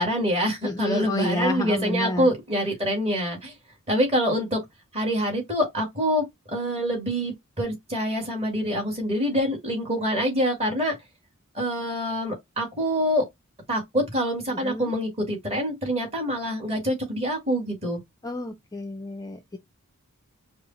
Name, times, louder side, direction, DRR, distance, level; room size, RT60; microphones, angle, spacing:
voice 1, 0.0-3.5 3.9-4.6 4.9-6.2 6.5-10.9 11.5-13.2 13.7-18.0, equal, 30° right, 1.7 m, -25 dB
voice 2, 0.6-2.3 14.5-14.9 18.2-19.6, left 2 dB, 15° left, 0.4 m, -30 dB
4.7 x 2.0 x 3.9 m
head